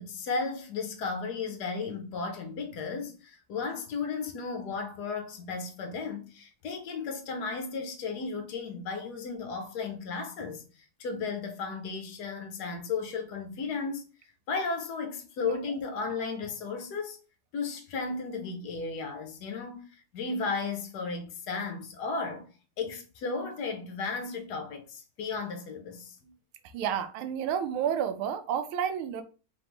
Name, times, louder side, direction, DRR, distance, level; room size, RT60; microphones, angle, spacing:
voice 1, 0.0-14.0 14.5-17.2 17.5-22.5 22.8-26.3, left 4 dB, 70° left, 1.0 m, -34 dB
voice 2, 26.7-29.2, right 8 dB, 85° right, 1.4 m, -30 dB
3.8 x 3.1 x 3.5 m
omnidirectional pair, 2.3 m